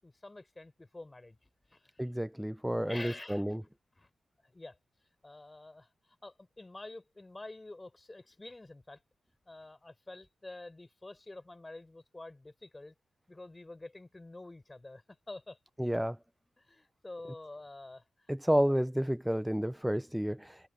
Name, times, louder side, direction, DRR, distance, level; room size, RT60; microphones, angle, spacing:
voice 1, 0.0-2.0 2.9-3.6 3.9-4.1 4.4-4.8 5.2-9.0 9.5-12.9 13.3-15.6 16.6-18.0, left 2 dB, 25° left, 4.7 m, -48 dB
voice 2, 2.0-3.6 15.8-16.2 18.3-20.7, equal, 5° right, 0.4 m, -30 dB
cardioid pair, 55°, 0 cm